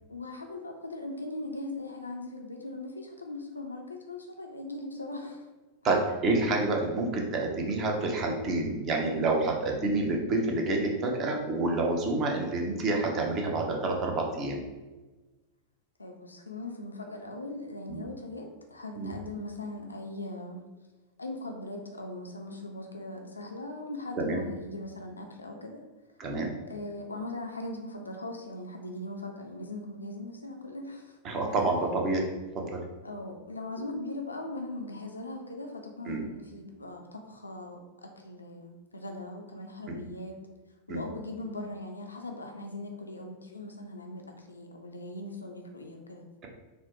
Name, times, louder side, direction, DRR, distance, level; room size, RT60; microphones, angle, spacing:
voice 1, 0.1-5.5 16.0-20.7 21.2-25.8 26.7-31.2 31.5-31.6 33.0-40.3 40.9-46.2, left 2 dB, 80° left, 3 dB, 0.4 m, -40 dB
voice 2, 5.8-14.6 17.9-18.0 19.0-19.1 24.2-24.4 26.2-26.5 31.2-32.3 32.5-32.8 36.1-36.2 39.9-40.0 40.9-41.0, right 2 dB, 30° right, 1 dB, 0.7 m, -28 dB
4.2 x 2.0 x 3.0 m, 1.2 s
figure-of-eight pair, 90°, 0 cm